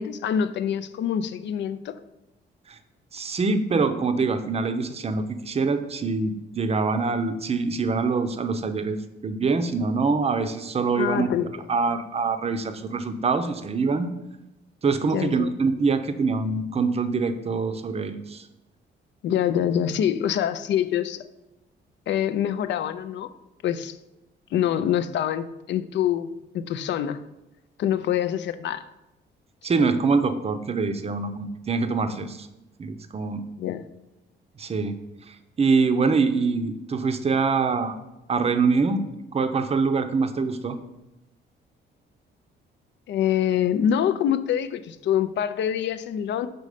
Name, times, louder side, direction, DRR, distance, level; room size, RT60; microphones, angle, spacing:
voice 1, 0.0-1.9 11.0-11.5 15.1-15.5 19.2-21.2 22.1-23.3 23.6-23.9 24.5-27.2 27.8-28.9 33.6-33.9 43.1-46.5, left 9 dB, 65° left, 13 dB, 0.4 m, -25 dB
voice 2, 3.1-11.3 11.7-14.1 14.8-18.5 29.6-32.5 32.8-33.4 34.6-35.0 35.3-37.9 38.3-39.0 39.3-40.8, right 4 dB, 30° right, 9 dB, 0.6 m, -24 dB
5.3 x 4.1 x 4.9 m, 0.95 s
cardioid pair, 90°, 20 cm